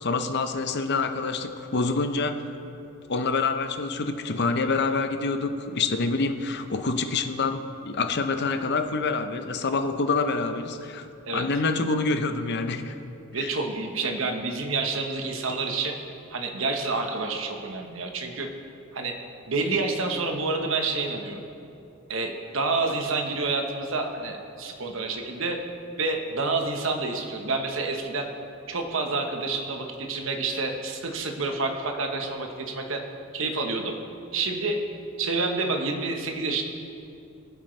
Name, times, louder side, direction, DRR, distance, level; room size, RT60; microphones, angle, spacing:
voice 1, 0.0-2.4 3.1-11.1 11.3-12.9 13.4-13.5, left 3 dB, 55° left, 7 dB, 0.7 m, -26 dB
voice 2, 13.3-15.9 16.3-18.5 18.9-19.1 19.5-21.4 22.1-25.6 26.0-28.3 28.7-33.0 33.3-34.0 34.3-34.8 35.2-36.6, right 3 dB, 65° right, 4 dB, 1.1 m, -28 dB
20.0 x 7.9 x 3.3 m, 2.6 s
head